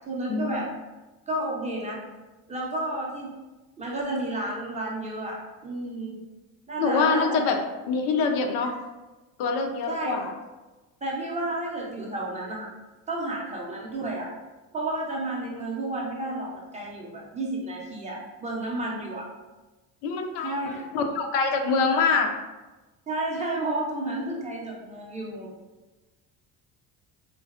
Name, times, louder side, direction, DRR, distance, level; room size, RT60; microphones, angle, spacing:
voice 1, 0.1-0.7 1.3-2.0 2.5-3.3 3.8-6.1 6.7-7.4 8.1-8.2 8.6-8.7 9.9-10.2 11.0-12.7 13.1-14.3 14.7-19.3 20.4-20.9 23.1-25.5, right 1 dB, 20° right, -3 dB, 0.4 m, -31 dB
voice 2, 6.8-7.6 7.9-8.7 9.4-10.3 20.0-22.3, left 4 dB, 90° left, 4 dB, 0.6 m, -25 dB
3.8 x 2.1 x 2.3 m, 1.2 s
cardioid pair, 140°, 40 cm